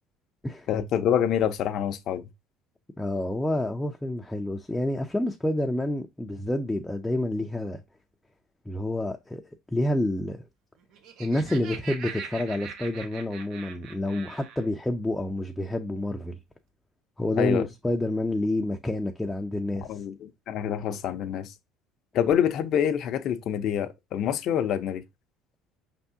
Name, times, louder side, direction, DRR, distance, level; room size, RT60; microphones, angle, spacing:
voice 1, 0.7-2.2 17.4-17.6 19.9-21.5 22.1-25.0, left 9 dB, 55° left, 0.5 m, -26 dB
voice 2, 3.0-7.8 8.7-9.4 9.7-10.4 11.2-16.4 17.2-19.9, left 1 dB, 5° left, 0.5 m, -28 dB
Laughter, 10.8-14.7, right 6 dB, 65° right, 0.9 m, -41 dB
5.2 x 3.4 x 2.7 m
cardioid pair, 115°, 0 cm